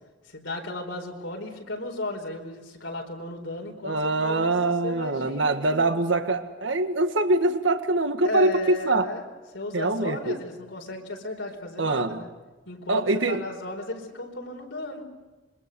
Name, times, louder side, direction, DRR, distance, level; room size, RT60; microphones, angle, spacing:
voice 1, 0.3-4.5 4.8-5.7 8.2-9.2 9.5-12.3 12.7-15.0, left 2 dB, 80° left, 2 dB, 4.5 m, -35 dB
voice 2, 3.8-9.1 9.7-10.4 11.8-12.2 12.9-13.4, right 2 dB, 75° right, 8 dB, 1.6 m, -24 dB
26.5 x 23.5 x 6.9 m, 1.3 s
head